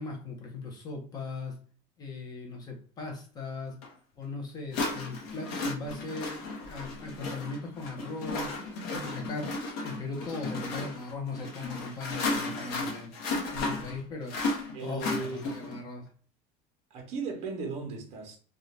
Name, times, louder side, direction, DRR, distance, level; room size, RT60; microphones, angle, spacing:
voice 1, 0.0-1.6 2.0-3.8 4.2-8.5 8.9-9.5 9.8-13.1 13.5-14.4 14.8-16.1, left 3 dB, 20° left, 0.6 m, -38 dB
sound 1, 3.8-3.9 4.7-15.8, left 3 dB, 60° left, 0.8 m, -34 dB
voice 2, 14.7-15.6 16.9-18.4, right 4 dB, 35° right, 0.8 m, -37 dB
2.6 x 2.3 x 3.1 m
cardioid pair, 175°, 19 cm